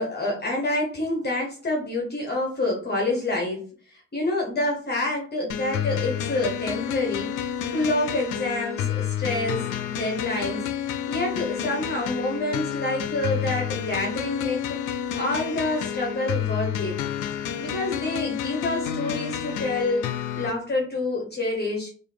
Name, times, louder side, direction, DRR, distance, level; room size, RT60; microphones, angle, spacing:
voice 1, 0.0-14.8 15.1-17.0 17.3-20.1 20.3-21.9, left 2 dB, 35° left, -1 dB, 1.1 m, -28 dB
sound 1, 5.5-20.5, left 9 dB, 85° left, 0.5 m, -30 dB
3.6 x 2.6 x 3.3 m, 0.42 s
cardioid pair, 90°, 30 cm